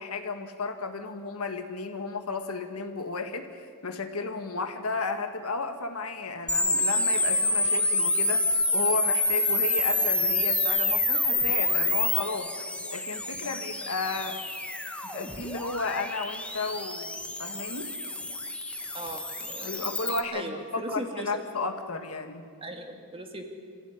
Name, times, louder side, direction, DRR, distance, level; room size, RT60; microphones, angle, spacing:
voice 1, 0.0-12.5 12.9-14.4 15.1-18.0 19.6-22.5, left 3 dB, 70° left, 6 dB, 2.0 m, -33 dB
sound 1, 6.5-20.2, left 2 dB, 5° left, 1.5 m, -28 dB
voice 2, 18.9-20.0 20.3-21.3 22.6-23.6, right 1 dB, 25° right, 4 dB, 2.4 m, -38 dB
26.5 x 15.5 x 9.9 m, 2.2 s
head